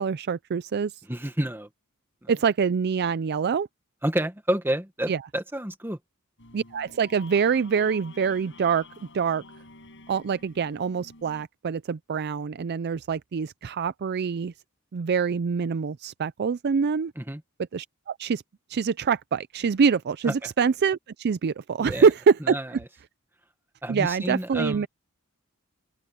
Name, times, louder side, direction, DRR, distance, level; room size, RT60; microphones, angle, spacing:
voice 1, 0.0-0.9 2.3-3.7 5.1-5.2 6.5-9.4 10.1-14.5 14.9-17.1 17.7-18.4 18.7-22.6 23.9-24.9, right 6 dB, 50° right, 0.4 m, -25 dB
voice 2, 1.1-1.7 2.2-2.3 4.0-6.0 17.2-17.4 20.2-20.3 21.8-22.1 22.4-22.7 23.8-24.9, right 1 dB, 10° right, 1.5 m, -29 dB
sound 1, 6.4-11.4, left 3 dB, 60° left, 7.4 m, -49 dB
head